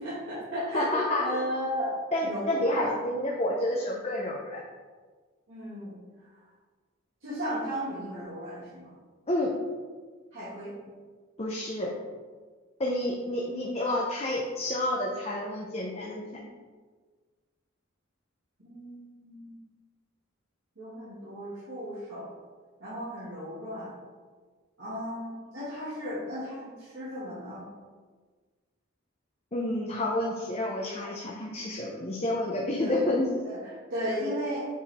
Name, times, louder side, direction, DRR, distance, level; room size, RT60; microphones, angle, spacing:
voice 1, 0.0-1.9 2.2-2.9 5.5-5.9 7.2-8.9 10.3-10.7 18.6-19.6 20.8-22.3 22.8-23.9 24.8-27.6 32.8-33.0 33.4-33.6 33.9-34.7, equal, 70° right, -11 dB, 2.0 m, -35 dB
voice 2, 0.7-1.4 2.1-4.6 9.3-9.5 11.4-11.9 12.8-16.4 29.5-33.3, left 1 dB, 30° left, -2 dB, 0.7 m, -29 dB
7.5 x 4.5 x 3.6 m, 1.5 s
head